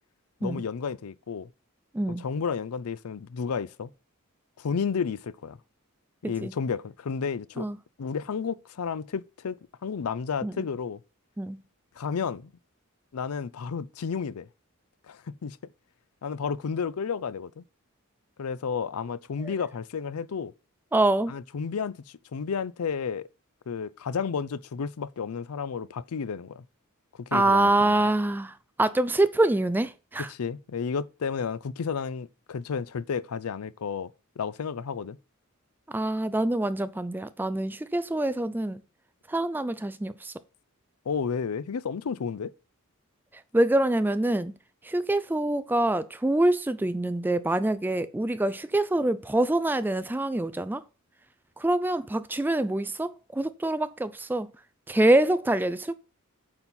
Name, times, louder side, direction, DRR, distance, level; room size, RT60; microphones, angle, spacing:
voice 1, 0.4-1.5 2.2-3.9 4.6-5.6 6.2-7.7 8.0-9.6 9.8-11.0 12.0-12.5 13.1-14.5 15.1-15.6 16.2-17.6 18.4-20.5 21.3-22.0 22.3-23.3 23.7-26.6 27.3-28.0 30.2-34.1 34.4-35.2 41.1-42.5, left 6 dB, 80° left, 0.5 m, -32 dB
voice 2, 20.9-21.3 27.3-30.3 35.9-38.8 39.3-40.3 43.5-44.5 44.8-50.8 51.6-54.5 54.9-55.9, right 1 dB, 10° right, 0.3 m, -25 dB
8.8 x 4.2 x 5.5 m
head